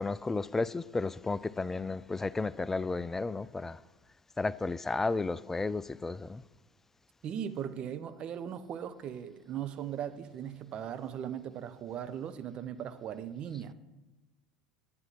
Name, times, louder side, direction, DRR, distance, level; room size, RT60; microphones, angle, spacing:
voice 1, 0.0-3.8 4.4-6.4, left 3 dB, 15° left, 0.4 m, -33 dB
voice 2, 7.2-13.7, right 9 dB, 45° right, 0.8 m, -38 dB
10.5 x 9.6 x 5.7 m
hypercardioid pair, 75°, 2 cm